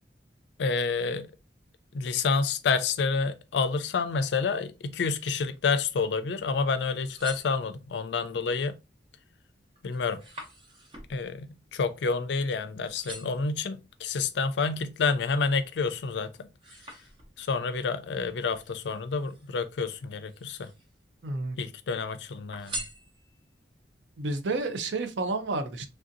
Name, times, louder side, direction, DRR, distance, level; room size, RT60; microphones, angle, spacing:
voice 1, 0.6-1.3 1.9-8.7 9.8-10.2 11.1-16.3 17.4-20.7 21.6-22.8, left 4 dB, 70° left, 0.4 m, -29 dB
sound 1, 7.0-8.1 8.7-9.1 9.4-12.5 12.8-13.5 14.2-15.6 16.1-17.6 18.5-19.6 20.2-21.0 21.3-22.0 22.5-23.6 24.1-24.2, right 2 dB, 25° right, 0.7 m, -45 dB
voice 2, 21.2-21.6 24.2-25.9, right 3 dB, 80° right, 0.5 m, -30 dB
3.3 x 2.6 x 2.5 m
head